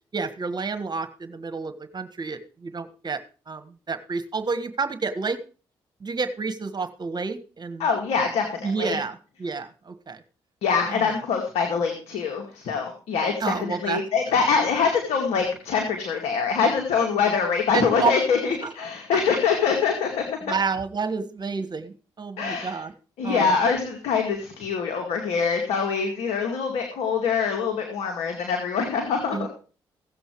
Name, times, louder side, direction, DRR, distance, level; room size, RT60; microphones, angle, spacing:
voice 1, 0.1-3.2 3.5-5.4 6.0-7.9 8.6-10.2 10.9-11.1 13.4-14.0 17.7-18.1 18.6-18.7 20.5-22.9 23.2-23.5 29.3-29.5, right 4 dB, 45° right, 11 dB, 1.4 m, -29 dB
voice 2, 7.8-9.0 10.6-20.2 22.4-22.8 23.2-29.5, left 5 dB, 80° left, 3 dB, 2.2 m, -24 dB
16.5 x 7.9 x 4.7 m, 0.37 s
supercardioid pair, 45°, 10 cm